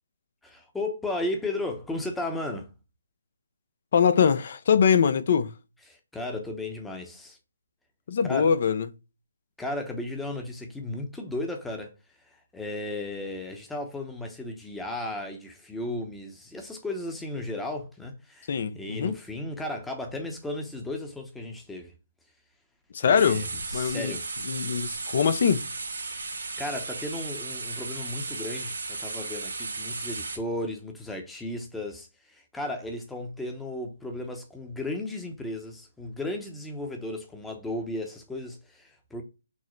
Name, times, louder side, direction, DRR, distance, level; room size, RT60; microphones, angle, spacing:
voice 1, 0.4-2.7 5.9-7.4 8.2-8.5 9.6-11.9 12.2-21.9 23.0-23.4 23.7-24.2 26.2-39.2, left 2 dB, 5° left, 0.8 m, -35 dB
voice 2, 3.9-5.5 8.1-8.9 18.5-19.2 22.9-23.5 23.7-24.2 24.4-25.7, left 7 dB, 50° left, 0.5 m, -23 dB
sound 1, 23.2-30.4, right 3 dB, 85° right, 1.8 m, -35 dB
6.2 x 2.1 x 3.1 m
hypercardioid pair, 150°, 0 cm